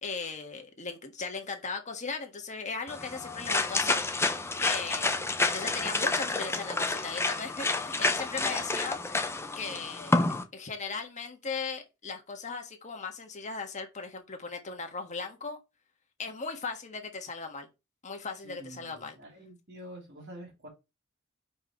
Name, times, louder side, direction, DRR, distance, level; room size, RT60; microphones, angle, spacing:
voice 1, 0.0-4.0 4.6-9.0 9.6-10.2 10.5-15.6 16.2-17.7 18.0-19.2, left 4 dB, 35° left, 1.5 m, -37 dB
sound 1, 2.9-10.4, left 3 dB, 15° left, 0.7 m, -29 dB
voice 2, 18.4-20.7, right 1 dB, 55° right, 3.0 m, -47 dB
5.3 x 4.7 x 4.4 m
head